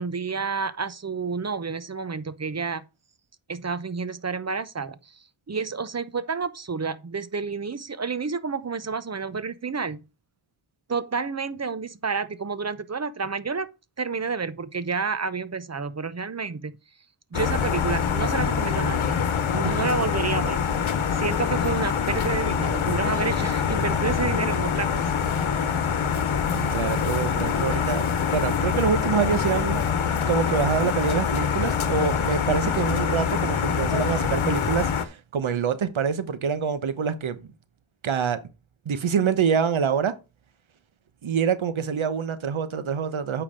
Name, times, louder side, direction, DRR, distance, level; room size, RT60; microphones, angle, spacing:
voice 1, 0.0-2.8 3.5-5.2 5.5-10.1 10.9-13.7 14.0-16.8 17.3-19.3 19.5-25.1, right 5 dB, 35° right, 0.8 m, -30 dB
sound 1, 17.3-35.0, left 7 dB, 85° left, 1.1 m, -25 dB
voice 2, 26.5-28.0 28.3-29.8 30.3-37.5 38.0-38.4 38.8-40.2 41.2-43.4, right 6 dB, 80° right, 1.1 m, -26 dB
8.7 x 5.0 x 5.0 m
wide cardioid pair, 75°, 47 cm